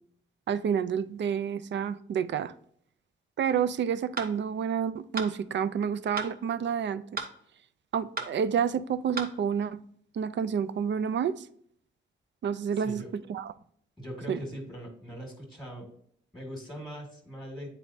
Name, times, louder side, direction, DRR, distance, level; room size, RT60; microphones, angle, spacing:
voice 1, 0.5-2.5 3.4-7.0 7.9-9.8 10.1-11.5 12.4-13.0 13.3-13.5 14.3-14.4, right 7 dB, 60° right, 0.4 m, -29 dB
sound 1, 4.2-4.3 5.2-5.3 6.2-6.3 7.2-7.3 8.2-8.3 9.2-9.3, right 4 dB, 45° right, 0.9 m, -34 dB
voice 2, 12.7-13.1 14.0-15.9 16.3-17.7, equal, ahead, 1.7 m, -41 dB
8.9 x 4.1 x 2.6 m
wide cardioid pair, 105°, 21 cm